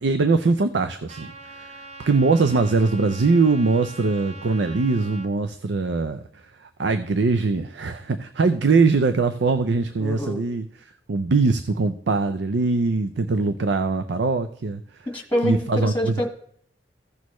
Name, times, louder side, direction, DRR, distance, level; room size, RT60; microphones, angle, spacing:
voice 1, 0.0-10.7 11.1-14.8 15.4-16.3, right 3 dB, 80° right, 10 dB, 0.5 m, -22 dB
Trumpet, 1.1-5.3, right 2 dB, 40° right, 1.0 m, -42 dB
voice 2, 10.0-10.4 15.1-16.3, left 1 dB, 10° left, 3 dB, 1.5 m, -25 dB
15.5 x 6.3 x 3.1 m, 0.63 s
head